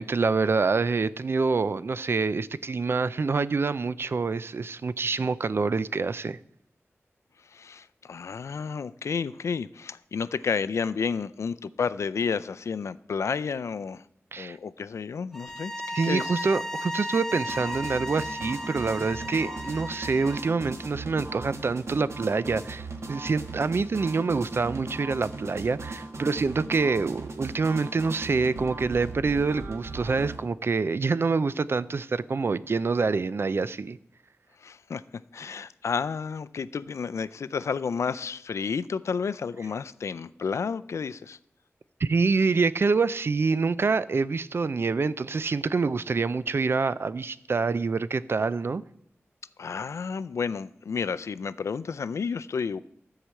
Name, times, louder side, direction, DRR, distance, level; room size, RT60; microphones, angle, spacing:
voice 1, 0.0-6.4 14.3-14.6 15.9-34.0 42.0-48.8, right 4 dB, 55° right, 0.4 m, -26 dB
voice 2, 7.5-14.0 14.4-16.5 34.6-35.0 35.3-41.4 49.6-52.8, left 5 dB, 90° left, 0.4 m, -31 dB
sound 1, 15.3-20.5, equal, 10° left, 0.5 m, -35 dB
sound 2, 17.5-30.4, right 3 dB, 75° right, 1.4 m, -38 dB
13.0 x 4.9 x 7.5 m
wide cardioid pair, 85°, 5 cm